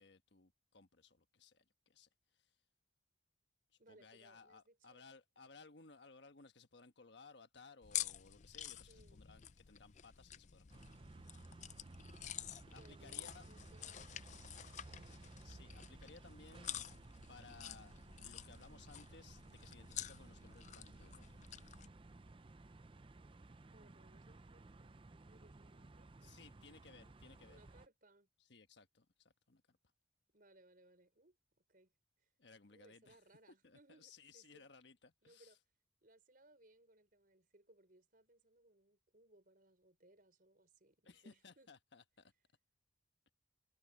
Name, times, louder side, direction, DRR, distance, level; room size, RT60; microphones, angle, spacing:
voice 1, 0.0-2.1 2.3-2.5 3.9-11.0 11.3-11.4 12.7-13.4 15.4-16.8 17.3-21.4 26.2-27.6 28.5-29.8 32.4-33.2 33.6-35.5 41.0-42.3, left 4 dB, 70° left, 1.3 m, -61 dB
voice 2, 3.8-5.1 8.9-9.2 12.7-15.2 23.7-24.9 25.2-26.4 27.5-28.3 30.3-31.9 32.2-32.3 32.7-34.7 35.2-35.6 36.0-41.7, right 1 dB, 50° right, 5.3 m, -67 dB
sound 1, 7.8-21.9, left 11 dB, 40° left, 0.4 m, -49 dB
sound 2, 10.7-27.9, right 2 dB, 30° right, 0.5 m, -57 dB
head